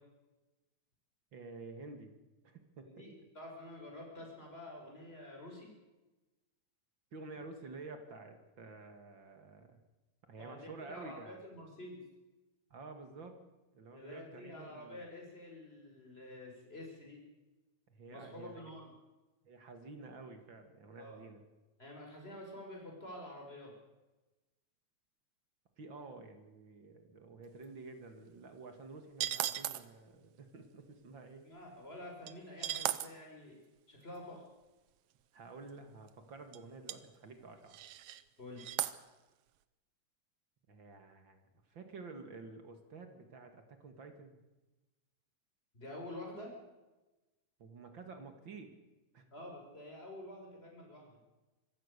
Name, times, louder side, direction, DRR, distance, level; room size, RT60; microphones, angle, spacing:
voice 1, 1.3-2.2 2.4-3.0 7.1-9.8 10.2-11.4 12.7-13.4 13.7-15.0 17.9-18.7 19.4-21.4 25.8-31.4 35.3-37.8 40.7-41.4 41.7-44.4 47.6-48.7 49.1-49.3, right 3 dB, 45° right, 7 dB, 2.5 m, -50 dB
voice 2, 2.8-5.7 10.4-12.0 13.9-17.2 18.1-18.9 21.0-21.2 21.8-23.7 31.4-34.4 38.4-38.8 45.7-46.5 49.3-51.2, left 1 dB, 20° left, 0 dB, 5.9 m, -49 dB
sound 1, 29.2-29.8 32.3-32.4 32.6-33.1 35.6-35.7 36.1-36.2 36.5-36.6 36.9-37.0 37.7-38.2 38.6-39.0, right 12 dB, 65° right, 1.6 m, -36 dB
26.0 x 15.5 x 6.7 m, 1.1 s
omnidirectional pair, 3.3 m